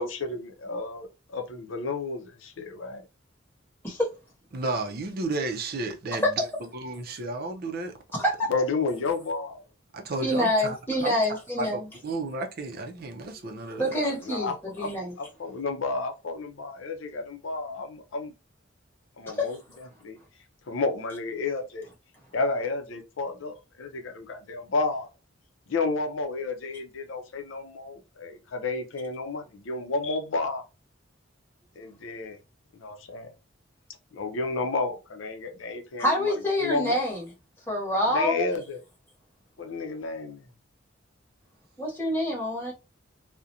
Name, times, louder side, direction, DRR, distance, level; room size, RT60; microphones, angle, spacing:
voice 1, 0.0-3.0 3.9-4.0 8.5-9.6 13.9-14.9 15.2-18.3 19.2-19.6 20.0-20.2 20.7-21.9 22.3-25.1 25.7-30.6 31.8-32.4 32.8-33.3 34.1-37.0 38.1-38.8 39.6-40.4, left 3 dB, 75° left, 0.5 m, -31 dB
voice 2, 4.5-6.4 6.7-7.9 9.9-14.0, right 3 dB, 50° right, 0.5 m, -33 dB
voice 3, 10.2-11.8 13.8-15.1 19.3-19.5 36.0-37.3 37.7-38.4 41.8-42.7, equal, 10° left, 1.0 m, -26 dB
2.4 x 2.1 x 2.7 m
head